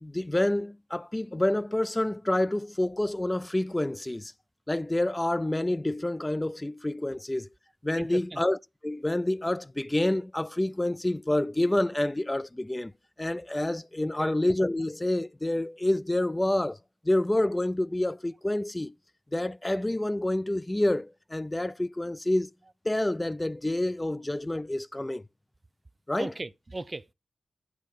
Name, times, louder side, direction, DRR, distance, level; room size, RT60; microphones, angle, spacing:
voice 1, 0.0-4.3 4.7-7.5 7.8-8.6 8.8-12.9 13.2-16.8 17.0-18.9 19.3-22.5 22.9-25.2 26.1-26.3, left 1 dB, 20° left, 0.4 m, -28 dB
voice 2, 8.0-8.4 14.2-14.3 26.2-27.1, right 2 dB, 35° right, 0.5 m, -37 dB
10.5 x 4.6 x 5.4 m
cardioid pair, 45°, 0 cm